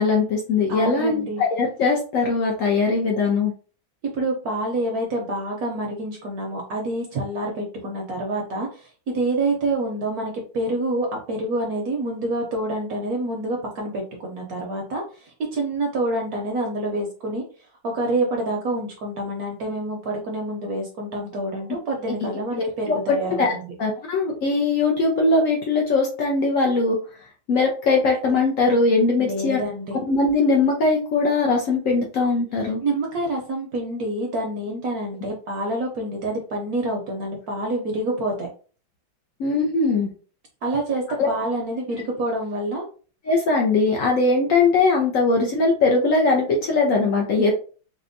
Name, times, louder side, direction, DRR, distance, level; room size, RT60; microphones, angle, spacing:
voice 1, 0.0-3.5 22.0-22.1 22.5-23.0 23.4-27.0 27.5-29.6 30.1-32.8 39.4-40.1 41.2-41.3 43.2-47.5, left 3 dB, 75° left, 0 dB, 0.7 m, -20 dB
voice 2, 0.7-1.4 4.1-17.4 17.8-23.4 29.2-30.0 32.8-38.5 40.6-42.8, right 1 dB, 65° right, 0 dB, 1.0 m, -27 dB
4.2 x 2.2 x 2.5 m, 0.39 s
omnidirectional pair, 2.1 m